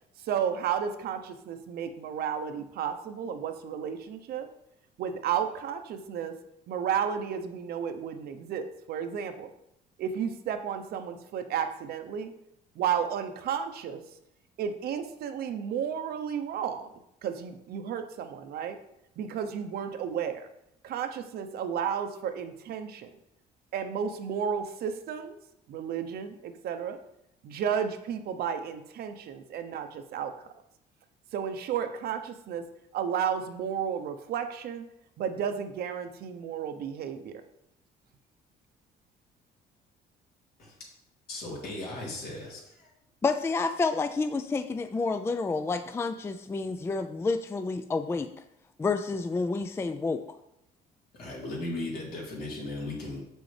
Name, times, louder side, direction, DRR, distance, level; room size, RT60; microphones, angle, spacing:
voice 1, 0.3-4.5 5.0-6.3 6.7-9.5 10.0-12.3 12.8-14.0 14.6-16.9 17.2-18.8 19.2-20.5 20.8-23.1 23.7-25.4 25.7-27.0 27.4-30.3 31.3-32.6 32.9-34.9 35.2-37.4, right 8 dB, 65° right, 8 dB, 0.8 m, -32 dB
voice 2, 41.3-42.9 51.2-53.2, left 2 dB, 75° left, -4 dB, 3.0 m, -37 dB
voice 3, 43.2-48.3 48.8-50.2, left 4 dB, 15° left, 9 dB, 0.3 m, -29 dB
7.0 x 6.3 x 3.3 m, 0.81 s
cardioid pair, 110°, 17 cm